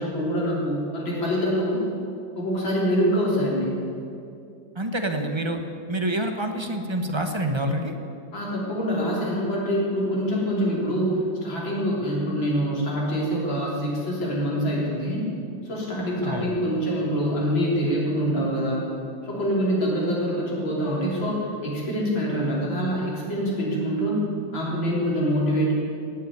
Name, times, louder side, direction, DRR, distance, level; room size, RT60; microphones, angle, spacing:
voice 1, 0.0-1.8 2.4-3.8 8.3-15.2 15.6-18.9 19.2-24.2 24.5-25.7, equal, 80° left, -4 dB, 4.4 m, -25 dB
voice 2, 4.7-5.6 5.9-7.9 16.2-16.6, right 1 dB, 20° right, 5 dB, 0.7 m, -27 dB
18.5 x 7.4 x 9.5 m, 2.5 s
omnidirectional pair, 2.1 m